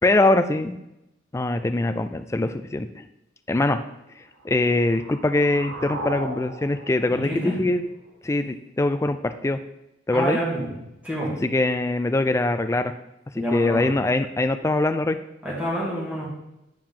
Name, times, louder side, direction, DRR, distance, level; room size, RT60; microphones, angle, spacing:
voice 1, 0.0-0.8 1.3-3.0 3.5-3.8 4.4-7.9 8.2-9.6 10.1-10.4 11.4-12.9 13.3-15.2, left 2 dB, 15° left, 9 dB, 0.3 m, -23 dB
sound 1, 4.3-8.3, right 2 dB, 75° right, 0.9 m, -37 dB
voice 2, 7.1-7.5 10.1-10.7 11.0-11.3 13.3-13.9 15.4-16.3, equal, 10° right, -6 dB, 2.1 m, -27 dB
8.9 x 4.7 x 3.7 m, 0.88 s
head